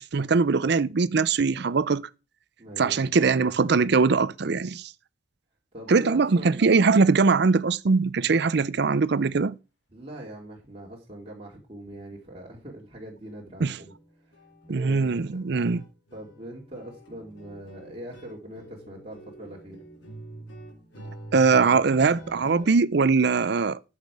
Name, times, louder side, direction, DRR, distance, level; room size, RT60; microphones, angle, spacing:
voice 1, 0.0-2.1 2.8-4.9 5.9-9.6 13.6-13.8 14.7-15.8 21.3-23.8, right 4 dB, 65° right, 0.6 m, -21 dB
voice 2, 2.6-3.3 5.7-6.7 9.9-13.9 14.2-14.4 14.7-15.4 16.1-19.8, right 1 dB, 35° right, 2.4 m, -42 dB
sound 1, 12.8-12.9 13.2-13.4 13.7-22.8, right 1 dB, 80° left, 4.0 m, -46 dB
13.5 x 7.3 x 4.8 m
head